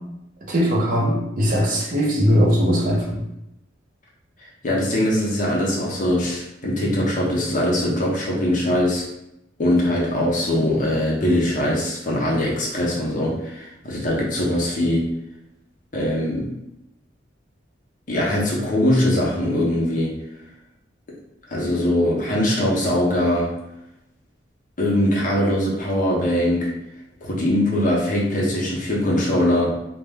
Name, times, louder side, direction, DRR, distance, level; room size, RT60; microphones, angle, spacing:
voice 1, 0.5-3.2, equal, 45° right, -2 dB, 0.6 m, -20 dB
voice 2, 4.4-9.0 9.6-15.1 15.9-16.5 18.1-20.1 21.5-23.5 24.8-26.7 27.2-29.7, left 1 dB, 40° left, -3 dB, 0.6 m, -21 dB
2.2 x 2.1 x 3.4 m, 0.86 s
head